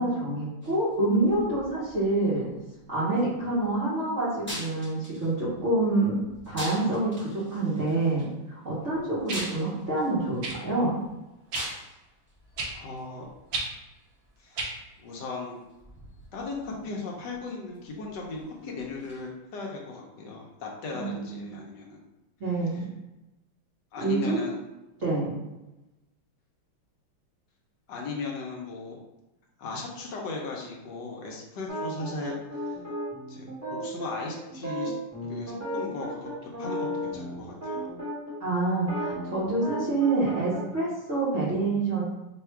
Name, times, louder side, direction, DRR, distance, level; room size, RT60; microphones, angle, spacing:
voice 1, 0.0-2.5 2.9-6.2 6.5-10.9 21.0-21.6 22.4-22.8 24.0-24.4 25.0-25.4 38.4-42.0, right 2 dB, 50° right, -9 dB, 0.9 m, -27 dB
sound 1, 0.6-19.3, equal, 10° left, 0.5 m, -46 dB
sound 2, 8.2-8.3 9.3-9.5 10.4-10.6 11.5-11.7 12.6-12.7 13.5-13.7 14.6-14.7 15.7-15.8, right 3 dB, 90° right, 0.7 m, -32 dB
voice 2, 12.7-13.3 14.4-14.7 15.0-15.6 16.3-22.0 22.7-22.8 23.9-24.6 27.9-29.0 29.6-32.8 33.3-35.0 35.2-37.9, left 3 dB, 70° left, -1 dB, 1.0 m, -37 dB
sound 3, 31.7-38.3 38.8-40.6, equal, 10° right, 0.9 m, -34 dB
3.5 x 2.3 x 4.4 m, 1.0 s
omnidirectional pair, 2.4 m